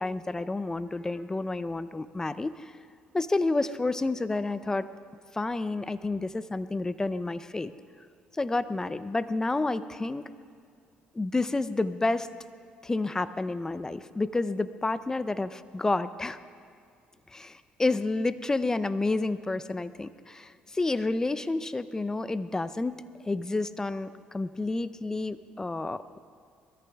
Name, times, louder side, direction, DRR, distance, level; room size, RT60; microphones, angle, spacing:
voice 1, 0.0-2.7 3.1-4.9 5.3-7.7 8.3-10.3 11.1-12.3 12.8-16.4 17.3-26.2, left 2 dB, 20° left, 14 dB, 0.6 m, -30 dB
21.0 x 14.0 x 3.6 m, 2.3 s
supercardioid pair, 75°, 3 cm